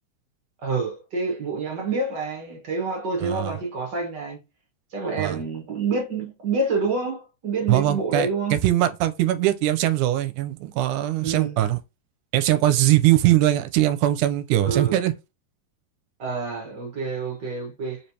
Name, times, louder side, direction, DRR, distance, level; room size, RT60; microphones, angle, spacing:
voice 1, 0.6-4.4 4.9-8.5 11.2-11.6 14.6-15.0 16.2-18.0, right 4 dB, 55° right, 1.3 m, -27 dB
voice 2, 3.2-3.6 5.2-5.4 7.7-11.8 12.3-15.1, right 14 dB, 85° right, 2.0 m, -21 dB
4.9 x 3.2 x 2.8 m
omnidirectional pair, 3.6 m